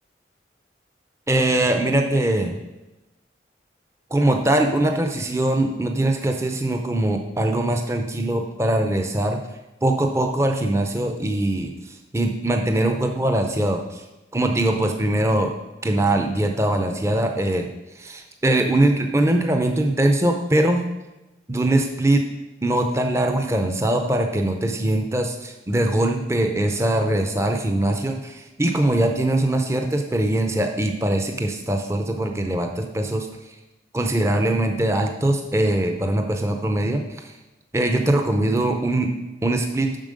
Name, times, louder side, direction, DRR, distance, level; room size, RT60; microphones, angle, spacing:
voice 1, 1.3-2.6 4.1-9.4 9.8-14.0 14.3-15.5 15.8-17.7 17.9-20.8 21.5-22.3 22.6-33.3 33.9-37.3 37.7-39.1 39.4-40.0, right 1 dB, 15° right, 4 dB, 0.5 m, -22 dB
7.4 x 6.0 x 5.1 m, 1.0 s
head